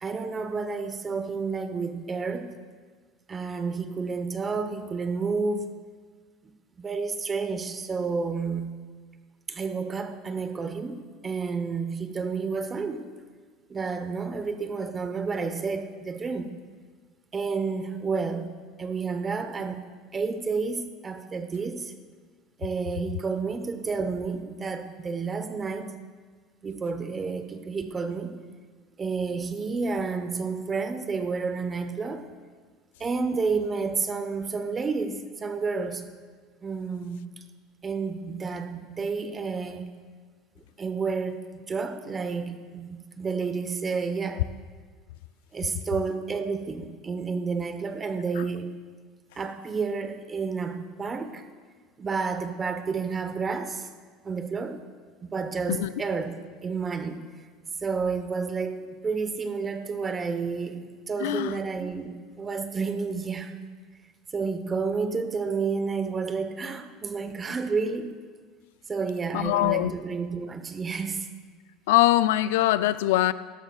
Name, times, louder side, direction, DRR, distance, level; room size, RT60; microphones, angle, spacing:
voice 1, 0.0-2.5 3.3-5.7 6.8-8.7 9.5-13.1 13.7-16.5 17.3-18.5 18.8-19.8 20.1-21.9 22.6-25.9 26.6-28.3 29.0-32.2 33.0-36.0 36.6-37.3 37.8-39.9 40.8-44.4 45.5-48.7 49.3-51.4 52.0-53.9 54.2-54.8 55.2-57.2 57.8-63.5 64.3-68.1 68.9-71.3, right 4 dB, 25° right, 9 dB, 1.0 m, -30 dB
voice 2, 61.2-61.6 69.3-69.9 71.9-73.3, left 15 dB, 85° left, 15 dB, 0.4 m, -22 dB
18.5 x 13.0 x 2.4 m, 1.5 s
supercardioid pair, 115°, 0 cm